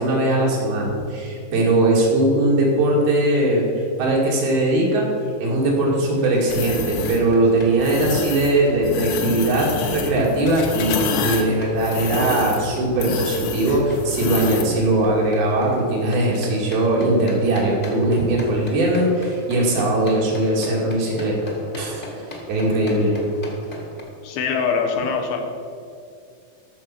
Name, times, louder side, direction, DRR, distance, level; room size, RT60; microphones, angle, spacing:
voice 1, 0.0-3.7 4.0-5.1 5.4-22.1 22.5-23.1, right 1 dB, 85° right, -3 dB, 4.3 m, -20 dB
sound 1, 6.1-24.0, left 1 dB, 25° left, 1.1 m, -39 dB
sound 2, 6.5-7.2 7.8-8.5 8.8-14.8, left 5 dB, 70° left, 2.5 m, -27 dB
voice 2, 24.2-25.4, left 5 dB, 90° left, 4 dB, 3.1 m, -23 dB
14.0 x 6.6 x 5.9 m, 2.5 s
omnidirectional pair, 4.3 m